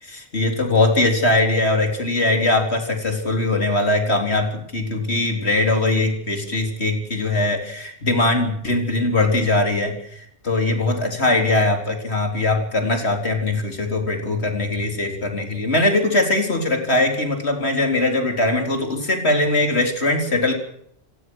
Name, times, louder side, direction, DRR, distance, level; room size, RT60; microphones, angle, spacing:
voice 1, 0.0-20.5, left 2 dB, 85° left, 4 dB, 4.3 m, -21 dB
28.5 x 17.0 x 6.3 m, 0.69 s
omnidirectional pair, 1.1 m